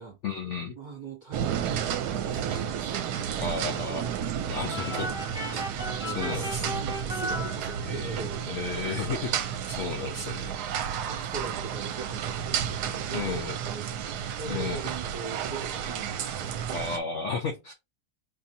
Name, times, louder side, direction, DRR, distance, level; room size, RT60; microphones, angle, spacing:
voice 1, 0.2-0.7 3.4-4.1 4.5-5.2 5.5-5.6 6.1-6.7 7.8-8.2 8.5-10.5 13.1-13.6 14.5-14.9 16.7-17.7, left 4 dB, 60° left, 0.8 m, -33 dB
voice 2, 0.7-4.0 5.5-5.6 6.0-9.3 10.1-13.4 13.7-16.9 17.5-17.6, right 4 dB, 30° right, 1.4 m, -42 dB
sound 1, 1.3-17.0, right 9 dB, 75° right, 1.1 m, -32 dB
sound 2, 4.7-8.2, equal, 5° right, 0.4 m, -36 dB
4.6 x 2.6 x 2.7 m
omnidirectional pair, 1.8 m